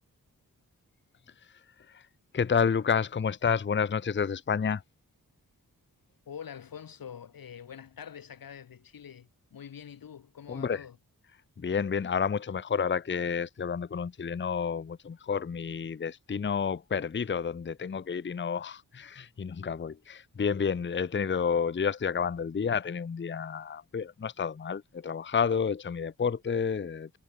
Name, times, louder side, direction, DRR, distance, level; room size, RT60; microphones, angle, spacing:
voice 1, 2.3-4.8 10.5-10.8 11.6-27.2, left 6 dB, 30° left, 0.6 m, -30 dB
voice 2, 6.3-11.0, left 8 dB, 75° left, 1.0 m, -45 dB
wide cardioid pair, 100°, 36 cm